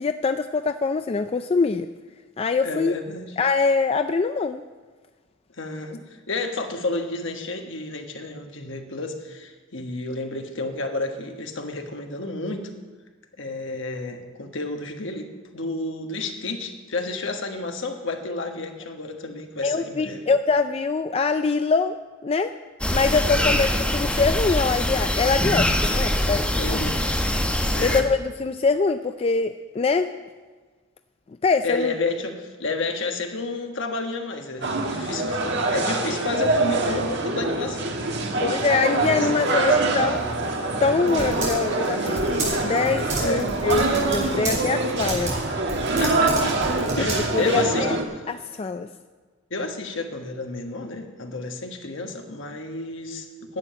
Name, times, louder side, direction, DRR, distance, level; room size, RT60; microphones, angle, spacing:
voice 1, 0.0-1.9 2.4-3.0 3.4-4.6 19.6-22.0 22.2-22.5 22.9-26.8 27.8-30.1 31.4-31.9 38.4-40.3 40.8-45.4 47.0-47.9 48.3-48.9, left 4 dB, 30° left, 9 dB, 0.3 m, -24 dB
voice 2, 2.6-3.3 5.6-12.7 13.4-20.2 23.3-23.6 26.5-27.2 27.7-28.1 31.6-38.5 39.2-40.0 43.2-43.5 46.0-46.6 47.0-48.0 49.5-53.6, left 3 dB, 65° left, 4 dB, 1.4 m, -31 dB
sound 1, 22.8-28.0, left 1 dB, 5° left, 0.9 m, -23 dB
sound 2, 34.6-48.0, right 3 dB, 60° right, 1.4 m, -24 dB
Typing, 40.1-47.6, right 2 dB, 35° right, 4.2 m, -32 dB
11.0 x 7.6 x 9.1 m, 1.4 s
head